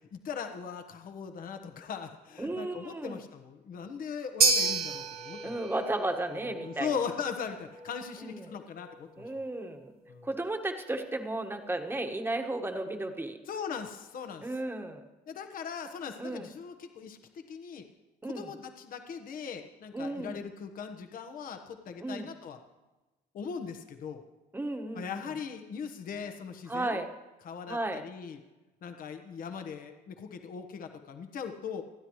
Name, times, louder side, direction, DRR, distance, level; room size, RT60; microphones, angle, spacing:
voice 1, 0.1-5.5 6.3-9.3 10.1-10.3 13.5-14.5 15.3-17.2 17.5-17.8 18.2-22.6 23.3-24.2 24.9-27.0 27.4-28.4 28.8-31.8, left 6 dB, 55° left, 6 dB, 1.3 m, -39 dB
voice 2, 2.4-3.2 5.4-6.9 8.2-8.5 9.2-9.9 10.2-13.4 14.4-15.0 16.2-16.5 18.2-18.5 19.9-20.4 22.0-22.3 24.5-25.3 26.7-27.1 27.7-28.0, right 2 dB, 15° right, 4 dB, 1.5 m, -34 dB
sound 1, 4.4-12.8, right 5 dB, 65° right, 2.3 m, -34 dB
28.5 x 10.0 x 3.2 m, 1.1 s
cardioid pair, 110°, 17 cm